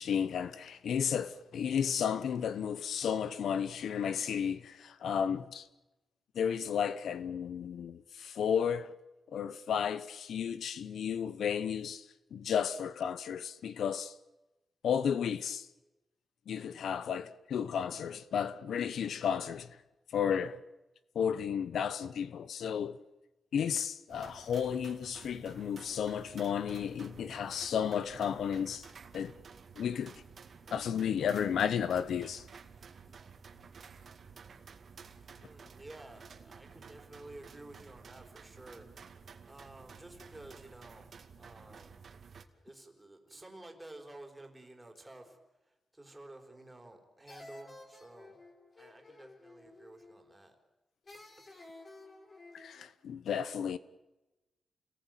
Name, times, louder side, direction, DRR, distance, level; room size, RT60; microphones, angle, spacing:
voice 1, 0.0-5.7 6.3-8.9 9.3-12.0 12.3-14.1 14.8-15.7 16.5-19.7 20.1-20.6 21.1-23.0 23.5-28.9 29.1-29.3 29.8-30.1 30.7-32.4 52.5-53.8, left 8 dB, 85° left, 1.1 m, -33 dB
sound 1, 24.1-42.4, right 5 dB, 50° right, 2.3 m, -53 dB
voice 2, 35.3-38.9 39.4-41.1 41.4-42.0 42.6-48.4 48.8-50.6, right 2 dB, 10° right, 4.2 m, -52 dB
sound 2, 46.5-47.0 47.3-50.3 51.1-52.9, left 2 dB, 30° left, 4.6 m, -53 dB
29.5 x 19.5 x 9.2 m
wide cardioid pair, 155°, 0 cm